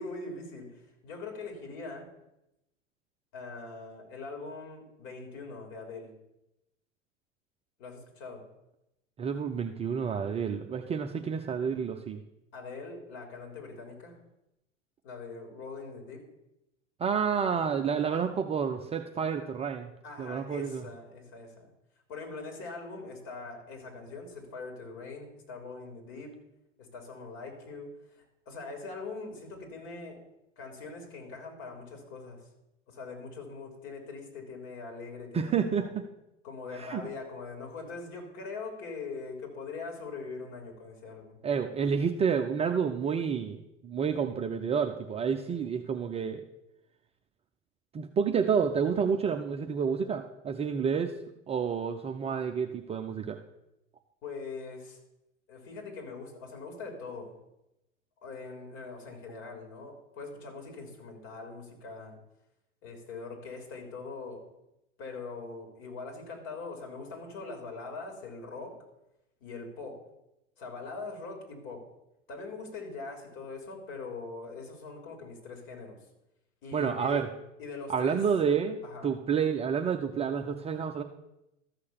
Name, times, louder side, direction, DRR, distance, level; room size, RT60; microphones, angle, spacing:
voice 1, 0.0-2.1 3.3-6.1 7.8-8.5 12.5-14.2 15.0-16.2 20.0-21.7 22.1-26.3 26.8-30.2 30.6-32.5 32.9-35.9 36.4-41.4 54.2-55.0 55.5-57.3 58.2-62.2 62.8-64.4 65.0-68.8 69.4-70.0 70.6-71.8 72.3-76.0 76.6-77.2 77.6-78.2 78.8-79.1, left 4 dB, 45° left, 3 dB, 3.6 m, -42 dB
voice 2, 9.2-12.2 17.0-19.9 20.2-20.8 35.3-36.0 36.8-37.0 41.4-43.6 43.8-46.4 47.9-51.1 51.5-53.4 76.7-77.3 77.9-78.8 79.0-81.0, right 6 dB, 15° right, 5 dB, 0.5 m, -29 dB
13.5 x 6.5 x 7.0 m, 0.89 s
figure-of-eight pair, 85°, 38 cm